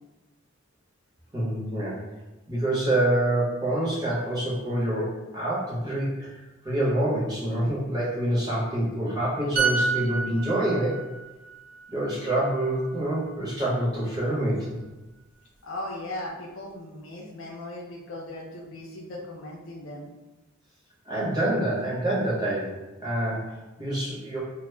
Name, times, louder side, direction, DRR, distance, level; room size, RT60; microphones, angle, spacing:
voice 1, 1.3-2.0 2.5-11.0 11.9-14.7 21.0-22.8 23.0-24.4, right 1 dB, 20° right, -7 dB, 0.8 m, -26 dB
sound 1, 9.6-13.2 13.5-13.7, right 4 dB, 40° right, 0.5 m, -30 dB
voice 2, 15.6-20.1, left 1 dB, 70° left, -1 dB, 0.5 m, -38 dB
2.1 x 2.0 x 3.2 m, 1.1 s
head